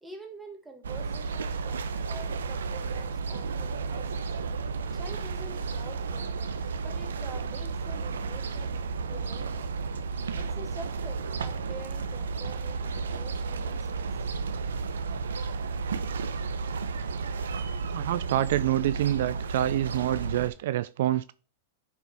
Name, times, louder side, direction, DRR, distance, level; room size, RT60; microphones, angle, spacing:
voice 1, 0.0-4.2 4.9-8.8 9.1-9.5 10.3-14.1, right 2 dB, 10° right, 1.7 m, -46 dB
sound 1, 0.8-20.5, right 4 dB, 85° right, 0.7 m, -33 dB
voice 2, 17.9-21.3, right 13 dB, 70° right, 0.3 m, -27 dB
9.9 x 4.2 x 3.5 m
hypercardioid pair, 115°, 0 cm